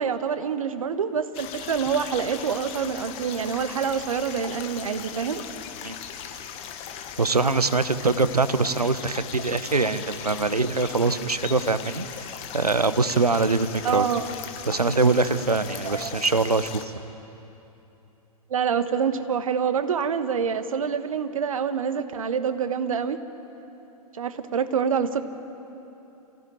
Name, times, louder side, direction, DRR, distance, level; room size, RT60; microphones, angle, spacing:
voice 1, 0.0-5.4 13.8-14.3 15.8-16.2 18.5-23.2 24.1-25.2, right 7 dB, 65° right, 10 dB, 1.3 m, -26 dB
sound 1, 1.3-16.8, left 8 dB, 30° left, 1.6 m, -38 dB
voice 2, 7.2-12.3 12.5-14.1 14.7-17.0, right 3 dB, 85° right, 13 dB, 1.0 m, -23 dB
27.0 x 15.5 x 9.1 m, 3.0 s
figure-of-eight pair, 105°, 19 cm